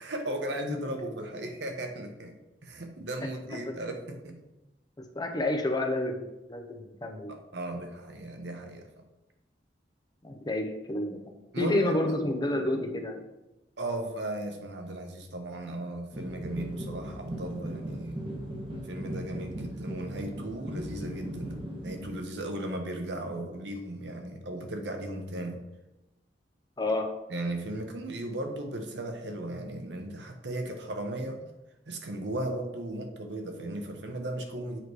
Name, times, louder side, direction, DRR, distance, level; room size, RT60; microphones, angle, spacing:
voice 1, 0.0-2.3 2.6-4.4 7.3-8.8 11.5-12.0 13.8-18.3 18.8-21.6 21.8-25.6 27.3-31.4 31.9-34.8, right 1 dB, 70° right, 4 dB, 0.9 m, -36 dB
voice 2, 5.0-7.3 10.2-11.2 11.6-13.2 26.8-27.1, left 1 dB, 25° left, 4 dB, 0.6 m, -30 dB
sound 1, 16.1-22.1, equal, 30° right, 1.1 m, -38 dB
7.8 x 3.2 x 4.7 m, 0.97 s
head